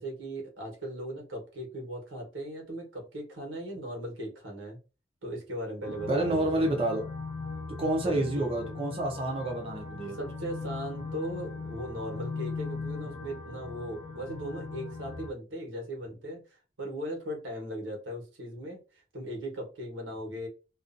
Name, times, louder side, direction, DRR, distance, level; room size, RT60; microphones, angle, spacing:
voice 1, 0.0-4.8 5.2-6.6 8.0-8.8 10.1-16.4 16.8-18.8 19.1-20.5, equal, 80° right, 1 dB, 1.2 m, -38 dB
sound 1, 5.8-15.3, left 4 dB, 35° left, 0.7 m, -39 dB
voice 2, 5.9-7.1 7.8-10.2, right 1 dB, 30° right, 0 dB, 0.6 m, -29 dB
2.5 x 2.4 x 2.5 m, 0.31 s
head